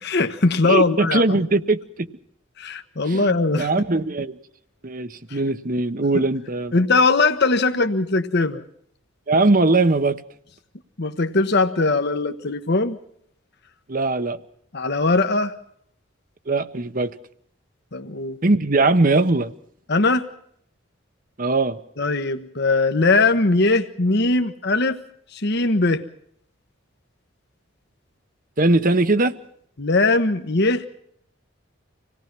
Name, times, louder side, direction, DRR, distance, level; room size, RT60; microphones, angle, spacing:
voice 1, 0.0-1.4 2.6-3.7 5.3-5.4 6.1-6.2 6.7-8.6 11.0-13.0 14.7-15.5 17.9-18.4 19.9-20.2 22.0-25.0 25.3-26.0 29.8-30.9, left 3 dB, 55° left, 1.2 m, -20 dB
voice 2, 0.7-2.1 3.1-3.3 3.6-4.4 4.8-6.7 9.3-10.2 13.9-14.4 16.5-17.1 18.4-19.5 21.4-21.8 28.6-29.3, right 2 dB, 45° right, 1.0 m, -20 dB
26.5 x 18.0 x 6.1 m
head